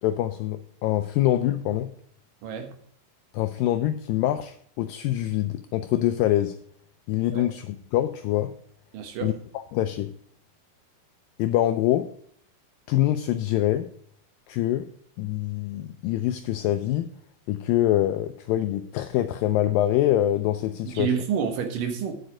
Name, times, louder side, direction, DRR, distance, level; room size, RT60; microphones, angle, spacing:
voice 1, 0.0-1.9 3.3-6.6 7.1-8.5 9.2-9.3 9.7-10.1 11.4-12.1 12.9-13.9 14.5-14.9 15.2-17.1 17.5-21.1, left 13 dB, 85° left, 2.0 m, -25 dB
voice 2, 2.4-2.7 7.3-7.4 8.9-9.3 20.9-22.1, right 7 dB, 65° right, 2.5 m, -28 dB
9.7 x 8.0 x 4.8 m
omnidirectional pair, 4.5 m